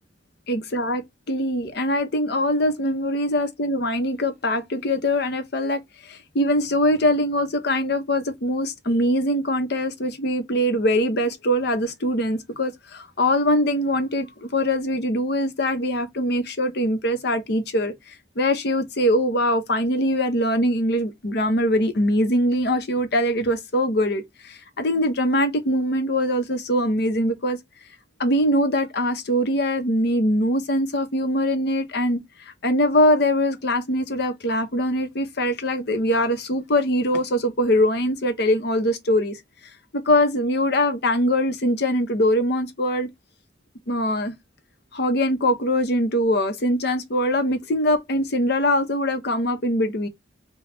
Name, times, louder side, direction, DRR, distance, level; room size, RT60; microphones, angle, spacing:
voice 1, 0.5-1.0 1.3-27.6 28.2-32.2 32.6-39.4 39.9-43.1 43.9-44.3 44.9-50.1, left 1 dB, 60° left, 0.8 m, -22 dB
3.3 x 2.3 x 3.9 m
head